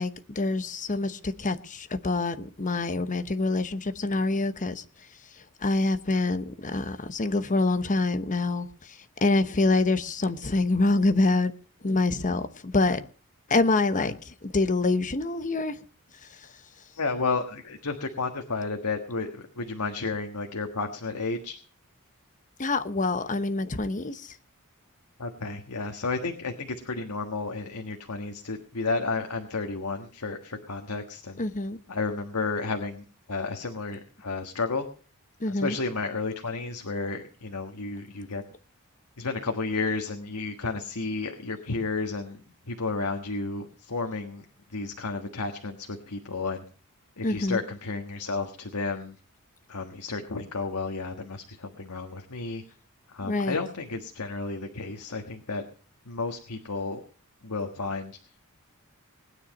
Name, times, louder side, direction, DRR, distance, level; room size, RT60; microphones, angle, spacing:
voice 1, 0.0-4.8 5.6-8.7 9.2-11.5 11.8-13.0 13.5-15.8 22.6-24.3 31.4-31.8 35.4-35.8 47.2-47.6 53.2-53.6, left 2 dB, 35° left, 11 dB, 1.0 m, -26 dB
voice 2, 16.9-21.6 25.2-31.4 31.9-34.8 35.5-38.4 39.2-42.4 42.7-44.4 44.7-46.6 47.2-49.2 49.7-52.6 53.1-55.6 56.0-57.0 57.4-58.2, left 3 dB, 90° left, 4 dB, 1.5 m, -32 dB
20.0 x 9.8 x 5.3 m, 0.41 s
head